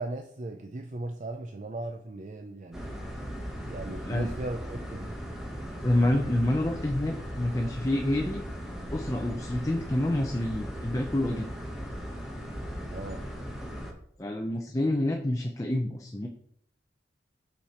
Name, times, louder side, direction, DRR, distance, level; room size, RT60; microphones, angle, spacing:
voice 1, 0.0-2.9 3.6-5.1 12.9-13.2, right 2 dB, 40° right, 6 dB, 0.4 m, -37 dB
sound 1, 2.7-13.9, equal, 5° right, 1.0 m, -38 dB
voice 2, 5.8-8.4 8.9-11.5 14.2-16.3, left 1 dB, 20° left, 2 dB, 0.5 m, -28 dB
6.5 x 5.7 x 4.3 m, 0.66 s
head